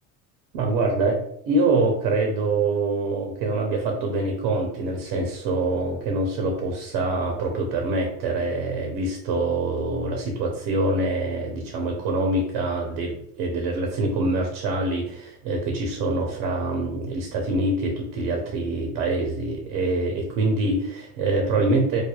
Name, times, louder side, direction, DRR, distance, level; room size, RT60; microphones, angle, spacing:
voice 1, 0.5-1.2 1.4-22.0, right 2 dB, 80° right, 1 dB, 0.8 m, -25 dB
5.0 x 2.2 x 2.3 m, 0.73 s
supercardioid pair, 80°, 36 cm